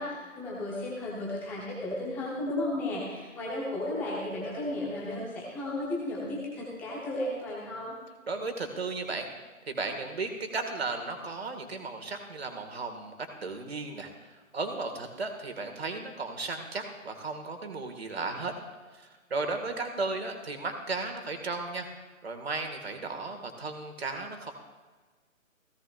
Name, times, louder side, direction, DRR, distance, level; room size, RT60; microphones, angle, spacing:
voice 1, 0.0-7.9, left 1 dB, 5° left, -4 dB, 1.0 m, -34 dB
voice 2, 8.3-9.3 9.7-13.2 13.4-18.5 18.9-21.9 22.2-24.5, right 3 dB, 50° right, 6 dB, 1.9 m, -35 dB
16.0 x 15.0 x 2.5 m, 1.3 s
figure-of-eight pair, 140°, 41 cm